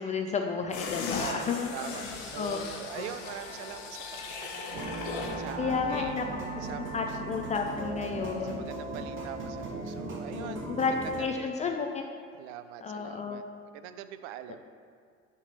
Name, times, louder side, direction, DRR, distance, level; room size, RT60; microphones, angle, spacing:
voice 1, 0.0-1.7 2.4-2.6 3.0-3.1 5.6-6.3 6.5-8.7 10.3-12.0 12.8-13.4, left 5 dB, 20° left, 3 dB, 0.3 m, -32 dB
sound 1, 0.7-5.5 5.8-5.9, left 4 dB, 60° left, 1.0 m, -38 dB
voice 2, 1.2-6.3 6.6-6.9 7.9-10.7 11.2-11.5 12.4-14.6, right 11 dB, 55° right, 11 dB, 0.5 m, -43 dB
Wind instrument woodwind instrument, 2.9-7.8, left 1 dB, 40° left, 1.3 m, -46 dB
sound 2, 4.7-11.2, right 2 dB, 30° right, 1.1 m, -38 dB
7.1 x 3.4 x 5.5 m, 2.1 s
figure-of-eight pair, 70°, 41 cm